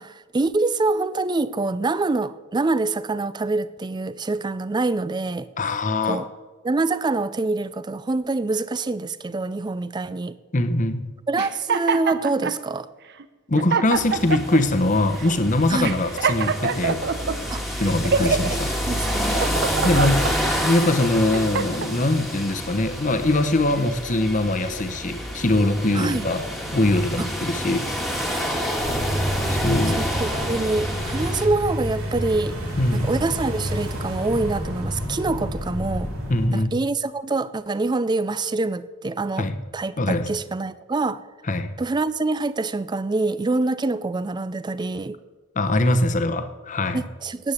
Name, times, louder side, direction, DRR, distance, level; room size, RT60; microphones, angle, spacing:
voice 1, 0.0-5.5 6.0-6.3 6.6-10.4 11.3-12.9 15.7-15.9 17.5-17.6 18.2-18.3 18.7-19.4 19.8-19.9 25.9-26.3 27.2-27.3 30.0-32.6 32.9-36.1 36.5-39.5 39.7-41.2 41.8-45.2 46.9-47.5, right 3 dB, 20° right, 16 dB, 0.4 m, -25 dB
voice 2, 5.6-6.3 10.5-11.1 13.5-17.1 17.8-18.7 19.8-26.5 26.7-27.9 29.5-30.1 32.8-33.1 36.3-36.8 39.4-39.5 40.0-40.3 41.5-41.8 45.6-47.0, left 2 dB, 35° left, 9 dB, 0.9 m, -22 dB
sound 1, 11.4-12.6 13.2-13.3 13.6-14.6 15.2-15.4 15.8-17.4 17.8-18.6 19.1-20.3 20.9-21.9, right 5 dB, 50° right, 0.7 m, -25 dB
sound 2, 13.9-31.5, equal, ahead, 1.6 m, -28 dB
sound 3, 28.8-36.5, equal, 90° right, 3.2 m, -29 dB
9.8 x 9.0 x 8.2 m, 1.3 s
head